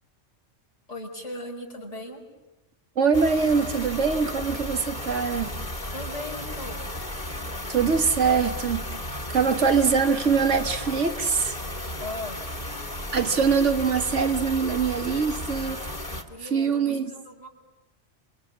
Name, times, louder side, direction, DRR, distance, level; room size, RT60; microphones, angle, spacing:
voice 1, 0.9-2.2 5.9-6.8 12.0-12.4 16.3-17.5, left 1 dB, 80° left, 6.1 m, -38 dB
voice 2, 3.0-5.5 7.7-8.8 9.3-11.6 13.1-15.8 16.5-17.1, right 5 dB, 85° right, 1.9 m, -23 dB
sound 1, 3.1-16.2, left 1 dB, 40° left, 2.6 m, -34 dB
28.0 x 27.0 x 7.3 m
omnidirectional pair, 1.2 m